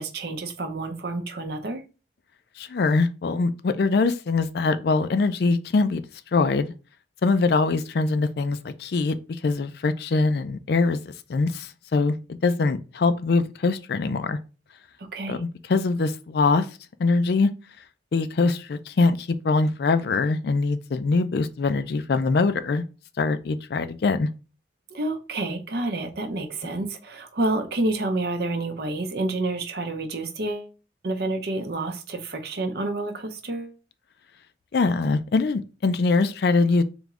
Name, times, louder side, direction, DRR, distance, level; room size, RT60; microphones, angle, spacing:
voice 1, 0.0-1.8 15.1-15.4 24.9-30.7 31.0-33.7, right 2 dB, 55° right, 0.6 m, -29 dB
voice 2, 2.6-6.0 6.3-6.7 7.2-12.2 12.4-14.4 15.3-16.7 17.0-17.5 18.1-22.8 23.2-24.3 34.7-36.8, left 3 dB, 55° left, 0.4 m, -23 dB
3.5 x 3.0 x 3.6 m
head